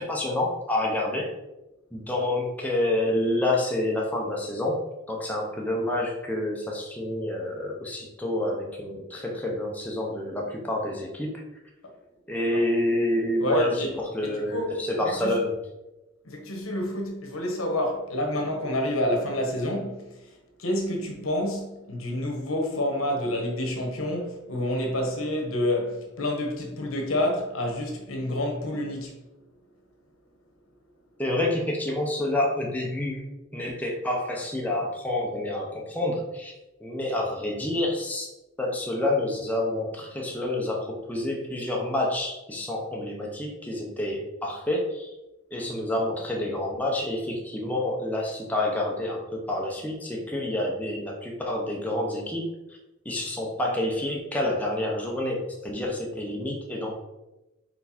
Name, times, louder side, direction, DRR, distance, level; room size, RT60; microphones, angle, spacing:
voice 1, 0.0-1.3 1.9-4.8 5.1-11.3 12.3-15.6 31.2-33.2 33.5-36.5 36.8-38.3 38.6-45.1 45.5-52.8 53.0-57.0, left 1 dB, 5° left, 0.9 m, -28 dB
voice 2, 13.4-13.9 14.2-14.8 15.0-15.4 16.2-20.1 20.6-29.1, left 1 dB, 80° left, 1.4 m, -28 dB
4.8 x 4.7 x 4.2 m
head